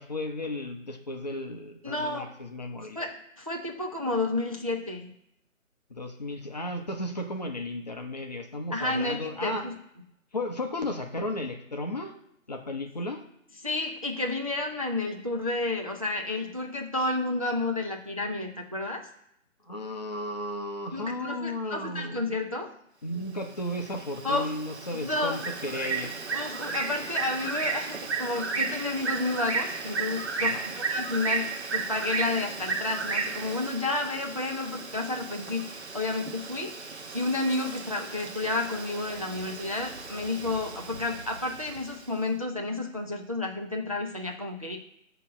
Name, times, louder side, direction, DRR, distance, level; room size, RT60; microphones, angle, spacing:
voice 1, 0.0-3.0 5.9-9.7 10.3-12.1 12.5-13.2 19.6-22.2 23.0-26.1 30.4-30.7, left 1 dB, 30° left, 3 dB, 0.8 m, -34 dB
voice 2, 1.8-2.3 3.0-3.1 3.4-5.1 8.7-9.7 13.6-19.1 20.9-22.7 24.2-24.5 24.9-25.4 26.3-44.8, left 2 dB, 25° right, 1 dB, 0.5 m, -31 dB
Bird, 23.4-42.1, right 4 dB, 55° right, 1.0 m, -34 dB
8.2 x 3.0 x 6.0 m, 0.77 s
figure-of-eight pair, 155°, 40 cm